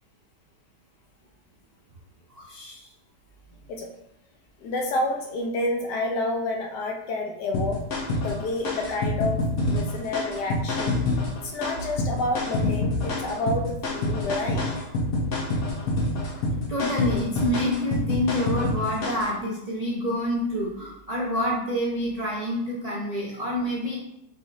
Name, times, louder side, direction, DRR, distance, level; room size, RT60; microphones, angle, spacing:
voice 1, 2.3-2.9 16.7-24.0, left 1 dB, 65° right, -4 dB, 0.3 m, -27 dB
voice 2, 4.6-11.0 11.4-14.7 16.6-16.7, left 2 dB, 80° left, 2 dB, 1.3 m, -29 dB
sound 1, 7.5-19.3, left 2 dB, 60° left, 1.2 m, -27 dB
5.0 x 3.3 x 2.4 m, 0.79 s
omnidirectional pair, 1.8 m